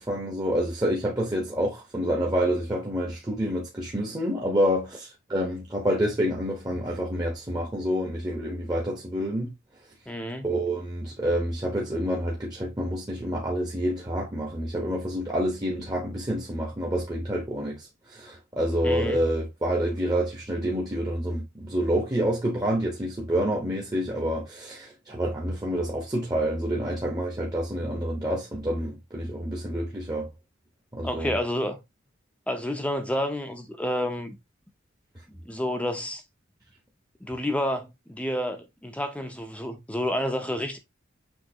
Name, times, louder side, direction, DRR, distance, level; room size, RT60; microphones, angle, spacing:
voice 1, 0.0-9.5 10.4-30.3 30.9-31.3, equal, 20° right, 1.0 m, -28 dB
voice 2, 10.1-10.5 18.8-19.2 31.0-31.8 32.5-34.4 35.3-36.2 37.2-40.8, left 1 dB, 5° left, 0.7 m, -29 dB
6.4 x 2.9 x 2.8 m
head